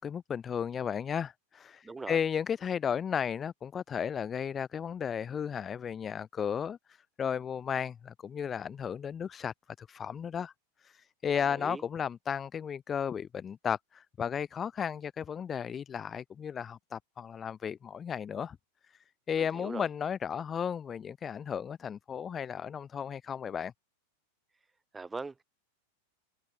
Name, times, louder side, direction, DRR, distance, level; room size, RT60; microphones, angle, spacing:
voice 1, 0.0-10.5 10.8-18.6 18.9-23.7, left 7 dB, 20° left, 1.9 m, -34 dB
voice 2, 1.8-2.2 11.5-11.8 19.6-19.9 24.9-25.4, right 3 dB, 10° right, 2.0 m, -40 dB
figure-of-eight pair, 90°, 0 cm